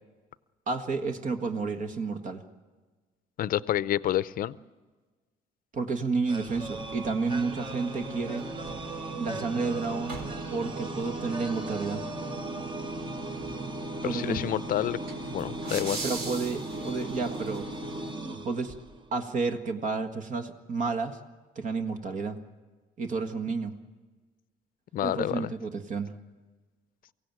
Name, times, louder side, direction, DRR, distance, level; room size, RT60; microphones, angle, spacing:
voice 1, 0.7-2.4 5.7-8.4 9.2-10.2 10.5-12.0 14.0-14.4 16.0-17.7 18.4-18.8 19.1-21.2 21.6-22.4 23.0-23.7 25.0-26.1, right 4 dB, 50° right, 8 dB, 1.7 m, -31 dB
voice 2, 3.4-4.5 14.0-15.0 15.3-16.0 24.9-25.5, left 12 dB, 55° left, 18 dB, 0.7 m, -28 dB
sound 1, 6.3-19.2, right 2 dB, 30° right, 1.3 m, -37 dB
sound 2, 6.5-18.1, right 1 dB, 65° right, 4.2 m, -42 dB
23.5 x 16.5 x 9.2 m, 1.3 s
cardioid pair, 110°, 17 cm